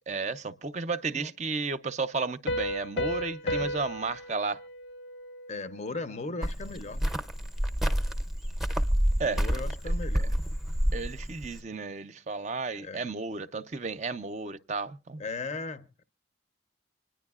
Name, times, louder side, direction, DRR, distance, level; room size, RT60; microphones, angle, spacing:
voice 1, 0.1-4.6 9.2-9.4 10.9-15.2, right 4 dB, 40° right, 0.5 m, -33 dB
Piano, 2.5-5.9, equal, 85° left, 1.2 m, -34 dB
voice 2, 5.5-7.1 9.2-10.4 12.8-13.0 15.2-16.0, left 3 dB, 35° left, 0.6 m, -37 dB
Cricket, 6.4-11.6, equal, ahead, 0.6 m, -28 dB
25.5 x 10.0 x 2.4 m
head